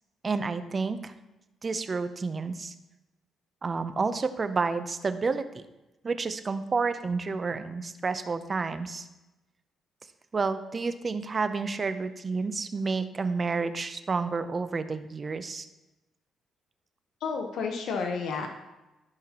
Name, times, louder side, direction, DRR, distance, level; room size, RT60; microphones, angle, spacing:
voice 1, 0.2-1.1 1.6-2.7 3.6-5.6 6.0-9.1 10.3-15.7, right 4 dB, 35° right, 11 dB, 0.6 m, -30 dB
voice 2, 17.2-18.5, left 5 dB, 75° left, 3 dB, 0.8 m, -31 dB
13.5 x 5.7 x 2.9 m, 1.0 s
cardioid pair, 90°, 0 cm